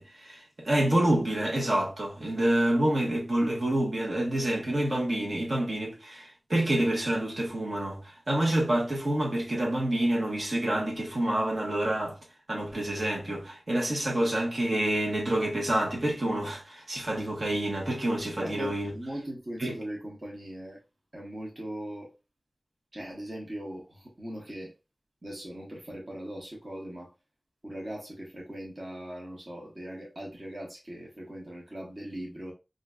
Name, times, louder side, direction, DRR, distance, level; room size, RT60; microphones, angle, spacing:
voice 1, 0.0-12.2 12.5-18.9 19.6-19.8, right 1 dB, 60° right, 1.1 m, -28 dB
voice 2, 18.4-20.8 21.1-22.1 22.9-24.7 25.2-27.1 27.6-32.5, right 1 dB, 40° right, 1.0 m, -40 dB
3.7 x 2.6 x 2.3 m
wide cardioid pair, 80°, 0 cm